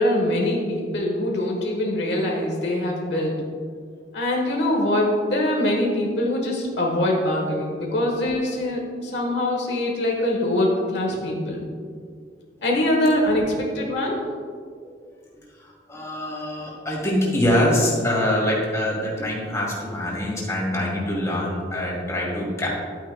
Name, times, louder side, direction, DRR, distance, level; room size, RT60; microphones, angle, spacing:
voice 1, 0.0-3.4 4.1-11.7 12.6-14.3, left 1 dB, 70° left, -1 dB, 1.2 m, -23 dB
voice 2, 15.6-22.7, left 1 dB, 15° left, -4 dB, 2.4 m, -24 dB
12.0 x 9.1 x 2.2 m, 2.1 s
head